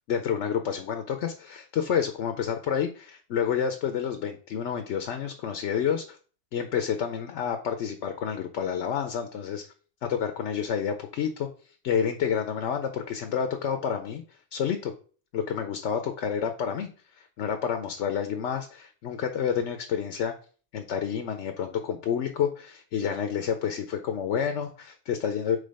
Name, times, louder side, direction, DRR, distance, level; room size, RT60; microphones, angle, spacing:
voice 1, 0.1-6.2 6.5-9.6 10.0-11.5 11.8-14.2 14.5-14.9 15.3-16.9 17.1-20.3 20.7-25.6, left 7 dB, 75° left, 6 dB, 1.0 m, -29 dB
5.1 x 4.0 x 5.2 m, 0.41 s
omnidirectional pair, 1.2 m